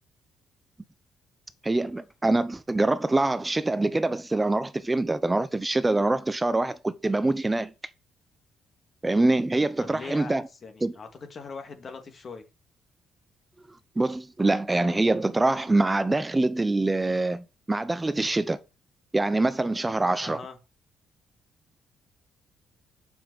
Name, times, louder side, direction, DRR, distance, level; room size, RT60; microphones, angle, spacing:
voice 1, 1.6-7.7 9.0-10.4 10.8-10.9 14.0-18.6 19.1-20.4, right 2 dB, 15° right, 0.7 m, -24 dB
voice 2, 9.8-12.4 20.2-20.6, left 4 dB, 45° left, 2.1 m, -41 dB
7.1 x 5.8 x 6.2 m
cardioid pair, 90°, 0 cm